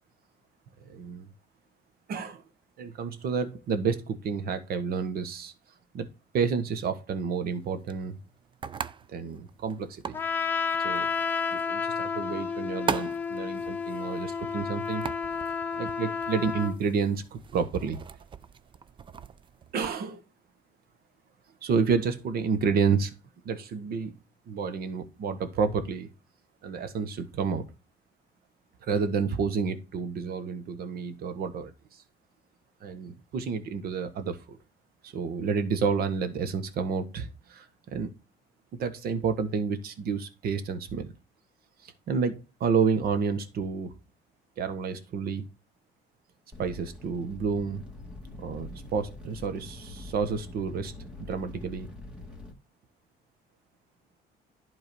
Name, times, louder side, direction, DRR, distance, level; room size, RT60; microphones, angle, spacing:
voice 1, 0.8-1.3 2.1-2.4 2.8-5.5 5.9-6.1 6.3-8.2 9.1-10.2 10.8-11.1 11.5-15.0 15.8-18.0 19.7-20.2 21.6-23.1 23.4-24.1 24.5-26.1 26.6-27.6 28.8-31.7 32.8-34.6 35.0-38.1 38.8-41.1 41.8-43.9 44.6-45.4 46.6-47.8 48.4-50.9 51.3-51.9, right 5 dB, 65° right, 1.4 m, -30 dB
sound 1, 7.5-20.0, right 7 dB, 30° right, 0.5 m, -41 dB
Trumpet, 10.1-16.8, left 5 dB, 10° left, 1.5 m, -31 dB
sound 2, 46.5-52.5, left 2 dB, 5° right, 2.4 m, -44 dB
11.0 x 4.0 x 5.2 m
cardioid pair, 110°, 17 cm